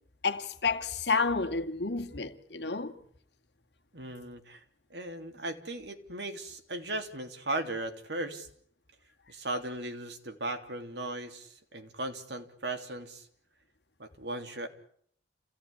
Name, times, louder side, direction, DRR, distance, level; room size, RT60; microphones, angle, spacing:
voice 1, 0.2-2.9, left 4 dB, 65° left, 2.1 m, -30 dB
voice 2, 3.9-4.6 4.9-8.5 9.3-13.3 14.0-14.7, right 2 dB, 65° right, 3.2 m, -37 dB
28.5 x 17.5 x 10.0 m
head